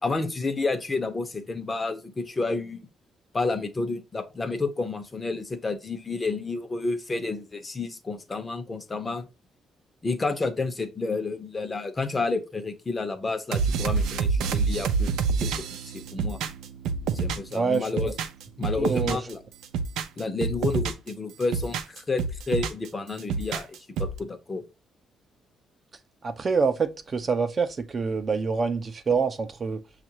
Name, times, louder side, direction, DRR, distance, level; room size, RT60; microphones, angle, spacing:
voice 1, 0.0-2.9 3.3-9.3 10.0-16.4 17.1-18.1 18.6-19.4 20.2-23.7 24.0-24.6, left 3 dB, 30° left, 0.8 m, -30 dB
sound 1, 13.5-17.6 17.8-19.3 19.6-21.1 21.4-22.9 23.2-24.2, right 5 dB, 85° right, 0.5 m, -27 dB
voice 2, 17.5-18.1 18.8-19.2 26.2-29.8, right 5 dB, 40° right, 0.6 m, -26 dB
6.2 x 2.5 x 2.9 m
cardioid pair, 90°, 0 cm